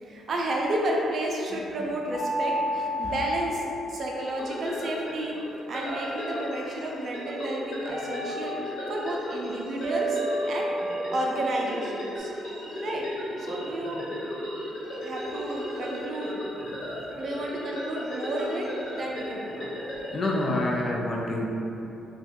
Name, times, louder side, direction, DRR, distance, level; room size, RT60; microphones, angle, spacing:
voice 1, 0.0-5.3 5.7-10.2 10.5-10.7 11.1-12.3 12.8-13.1 13.4-14.0 15.0-16.3 17.2-19.7, right 1 dB, 55° right, -1 dB, 0.5 m, -31 dB
voice 2, 1.5-1.9 3.0-3.1 19.6-19.7 20.1-21.5, left 2 dB, 40° left, -1 dB, 0.4 m, -28 dB
sound 1, 2.1-4.5 5.9-6.9 7.9-9.2 9.8-12.2, equal, 35° right, 1.2 m, -33 dB
sound 2, 4.2-20.6, equal, 75° left, 1.1 m, -36 dB
3.5 x 2.3 x 2.6 m, 2.9 s
cardioid pair, 90°, 0 cm